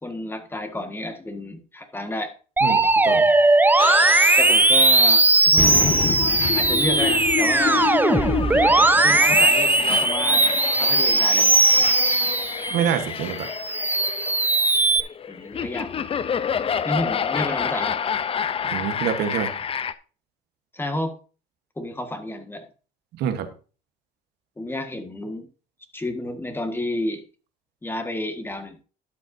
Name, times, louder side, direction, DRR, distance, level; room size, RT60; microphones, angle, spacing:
voice 1, 0.0-2.3 4.4-5.9 6.5-7.9 9.0-10.5 10.8-11.5 15.3-16.1 16.8-18.0 20.7-21.2 21.8-22.7 24.6-25.5 25.9-27.2 27.8-28.8, left 1 dB, 15° left, 7 dB, 1.6 m, -30 dB
Musical instrument, 2.6-13.0 13.4-15.0, right 2 dB, 10° right, 0.7 m, -18 dB
voice 2, 2.6-3.3 8.3-8.4 12.7-13.5 18.7-19.5 23.2-23.5, right 9 dB, 80° right, 8 dB, 1.2 m, -26 dB
sound 1, 3.8-19.9, left 7 dB, 35° left, 0.5 m, -28 dB
12.0 x 8.2 x 2.7 m, 0.36 s
cardioid pair, 110°, 17 cm